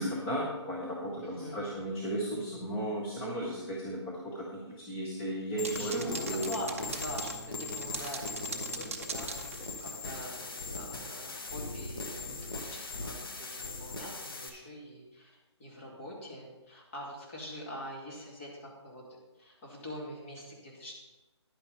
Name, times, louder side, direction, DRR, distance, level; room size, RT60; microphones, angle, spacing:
voice 1, 0.0-6.6, right 1 dB, 10° left, -5 dB, 0.6 m, -35 dB
voice 2, 1.2-1.8 5.7-9.3 9.8-19.0 19.4-20.9, equal, 25° left, -4 dB, 2.4 m, -44 dB
sound 1, 5.6-14.5, left 3 dB, 55° left, 1.4 m, -40 dB
sound 2, 5.6-10.2, right 5 dB, 30° right, 0.7 m, -41 dB
10.5 x 8.9 x 4.2 m, 1.1 s
hypercardioid pair, 170°, 15 cm